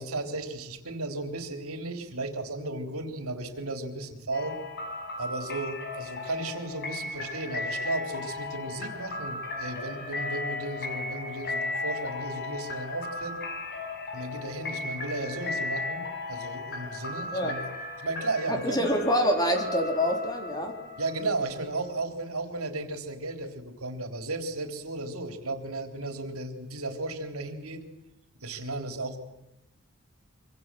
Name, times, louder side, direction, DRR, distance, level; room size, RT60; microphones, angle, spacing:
voice 1, 0.0-4.6 5.2-13.4 14.1-17.7 18.0-18.8 21.0-27.8 28.4-29.2, right 2 dB, 80° right, 6 dB, 3.7 m, -34 dB
sound 1, 4.3-21.9, left 3 dB, 50° left, 6.2 m, -36 dB
voice 2, 18.5-20.8, equal, 20° left, 4 dB, 3.9 m, -26 dB
26.0 x 25.0 x 7.8 m, 0.85 s
head